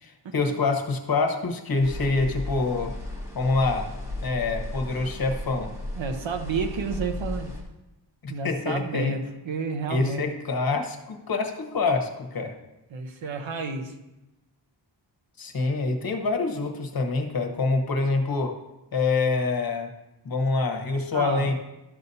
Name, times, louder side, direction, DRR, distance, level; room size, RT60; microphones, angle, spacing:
voice 1, 0.0-2.9 3.3-3.9 4.2-5.7 8.2-9.1 9.9-12.5 15.4-18.5 18.9-19.9 20.2-21.5, left 3 dB, 50° left, 3 dB, 1.1 m, -26 dB
sound 1, 1.8-7.6, left 2 dB, 5° right, 1.5 m, -35 dB
voice 2, 6.0-7.5 8.3-10.2 12.9-13.9 21.1-21.5, right 4 dB, 80° right, 6 dB, 1.0 m, -31 dB
12.5 x 6.7 x 2.7 m, 0.97 s
wide cardioid pair, 150°, 45 cm